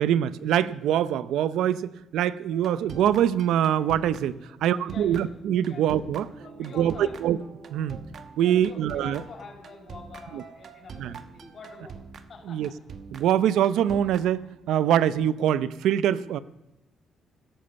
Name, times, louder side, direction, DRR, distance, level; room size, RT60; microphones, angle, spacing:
voice 1, 0.0-6.3 6.6-7.4 7.7-8.0 8.4-9.2 10.3-10.4 11.0-11.1 12.5-12.7 13.1-16.4, right 10 dB, 85° right, 16 dB, 0.7 m, -24 dB
sound 1, 2.5-14.9, right 5 dB, 50° right, 1.1 m, -45 dB
voice 2, 4.4-5.2 5.6-5.8 6.4-7.1 8.3-12.0 12.3-12.7, left 4 dB, 40° left, 0 dB, 5.1 m, -45 dB
16.0 x 12.5 x 6.9 m, 0.96 s
cardioid pair, 145°, 0 cm